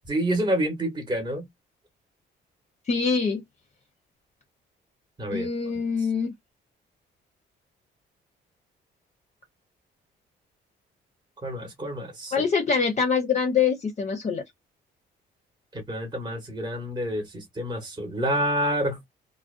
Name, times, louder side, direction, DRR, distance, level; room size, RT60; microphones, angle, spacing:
voice 1, 0.1-1.4 5.2-5.5 11.4-12.3 15.7-19.1, right 1 dB, 20° right, 0.9 m, -28 dB
voice 2, 2.9-3.4 5.3-6.3 12.3-14.4, left 5 dB, 35° left, 0.5 m, -24 dB
2.5 x 2.1 x 2.4 m
cardioid pair, 90°, 20 cm